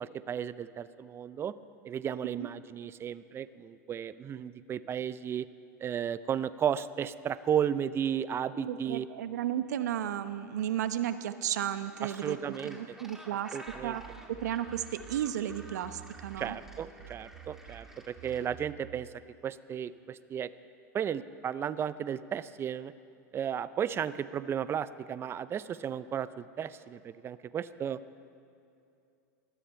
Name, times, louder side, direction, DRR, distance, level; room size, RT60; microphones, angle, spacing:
voice 1, 0.0-1.5 1.8-5.5 5.8-9.1 12.0-13.0 13.5-14.0 16.4-19.1 19.4-20.5 20.9-22.9 23.3-28.0, right 8 dB, 25° right, 16 dB, 0.5 m, -34 dB
voice 2, 8.5-13.6 13.8-14.0 14.4-16.6, right 11 dB, 80° right, 12 dB, 0.9 m, -34 dB
Gull seagull, 11.7-18.5, right 1 dB, 5° right, 2.0 m, -51 dB
sound 1, 13.7-19.1, right 10 dB, 45° right, 1.0 m, -51 dB
19.5 x 13.0 x 5.6 m, 2.6 s
hypercardioid pair, 105°, 9 cm